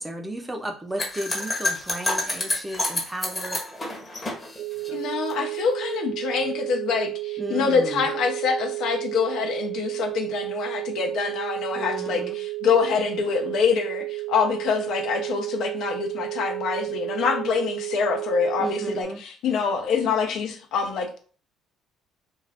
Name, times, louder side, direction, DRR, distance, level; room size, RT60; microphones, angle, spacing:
voice 1, 0.0-3.6 7.4-8.1 11.7-12.4 18.6-19.2, right 1 dB, 10° right, 0.5 m, -34 dB
sound 1, 1.0-5.4, left 2 dB, 20° left, 0.9 m, -28 dB
sound 2, 4.6-19.0, right 20 dB, 70° right, 0.3 m, -32 dB
voice 2, 4.9-21.2, left 6 dB, 65° left, 0.6 m, -25 dB
2.4 x 2.3 x 3.4 m
cardioid pair, 115°, 0 cm